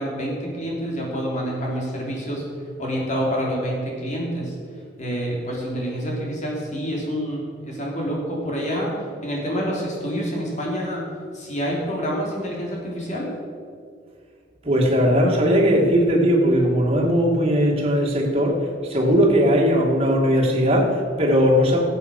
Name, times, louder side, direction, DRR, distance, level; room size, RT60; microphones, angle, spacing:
voice 1, 0.0-2.4 2.8-4.5 5.0-9.0 9.2-11.1 11.3-13.3, equal, 45° left, -3 dB, 3.6 m, -27 dB
voice 2, 14.6-21.8, equal, 35° right, -1 dB, 2.4 m, -19 dB
14.0 x 8.4 x 6.6 m, 2.2 s
head